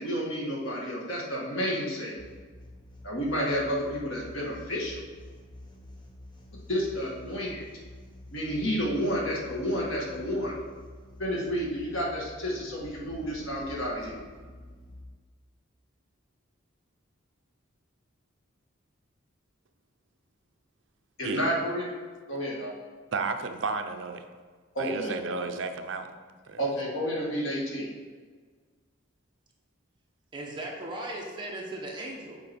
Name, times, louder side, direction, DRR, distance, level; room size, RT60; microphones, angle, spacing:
voice 1, 0.0-2.2 3.0-5.0 6.7-7.6 8.3-10.5 11.2-14.2 21.2-21.9 22.3-22.7 24.8-25.1 26.6-27.9, equal, 80° left, -3 dB, 1.8 m, -30 dB
sound 1, 2.2-15.0, left 1 dB, 25° left, 0.9 m, -48 dB
voice 2, 23.1-24.2 24.8-26.1 26.4-26.6, right 4 dB, 65° right, 7 dB, 0.6 m, -32 dB
voice 3, 30.3-32.4, right 1 dB, 20° right, -2 dB, 1.1 m, -37 dB
7.7 x 4.8 x 4.4 m, 1.5 s
head